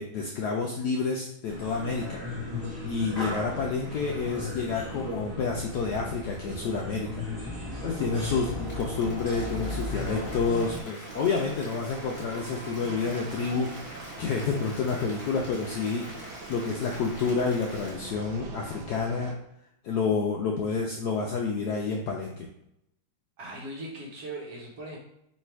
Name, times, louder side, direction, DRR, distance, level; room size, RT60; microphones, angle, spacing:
voice 1, 0.0-2.2 2.8-7.2 7.8-13.7 14.0-16.1 16.5-19.3 19.8-22.5, left 4 dB, 75° left, 0 dB, 0.9 m, -29 dB
sound 1, 1.5-10.8, left 2 dB, 20° right, 1.7 m, -36 dB
Applause, 8.2-17.9, left 1 dB, 30° left, 1.2 m, -46 dB
sound 2, 11.0-19.3, right 4 dB, 85° right, 1.5 m, -43 dB
voice 2, 23.4-25.0, right 2 dB, 55° right, -2 dB, 1.2 m, -39 dB
3.3 x 3.1 x 4.4 m, 0.79 s
omnidirectional pair, 2.2 m